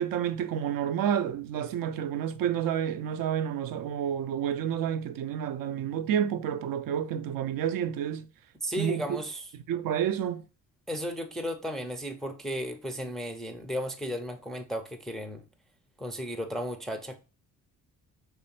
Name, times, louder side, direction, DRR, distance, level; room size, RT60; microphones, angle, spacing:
voice 1, 0.0-8.3 8.8-9.1 9.7-10.4, right 9 dB, 45° right, 0.5 m, -29 dB
voice 2, 8.6-9.5 10.9-15.4 16.0-17.2, equal, ahead, 0.5 m, -34 dB
4.1 x 3.3 x 2.8 m
figure-of-eight pair, 45°, 48 cm